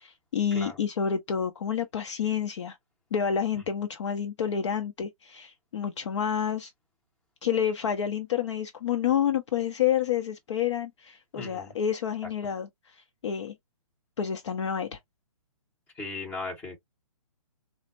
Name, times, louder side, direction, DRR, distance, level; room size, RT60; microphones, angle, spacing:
voice 1, 0.0-2.8 3.1-6.7 7.4-12.7 13.2-13.5 14.2-15.0, left 8 dB, 55° left, 0.6 m, -29 dB
voice 2, 11.3-11.7 16.0-16.8, left 3 dB, 15° left, 1.4 m, -37 dB
4.2 x 2.0 x 2.5 m
hypercardioid pair, 160°, 18 cm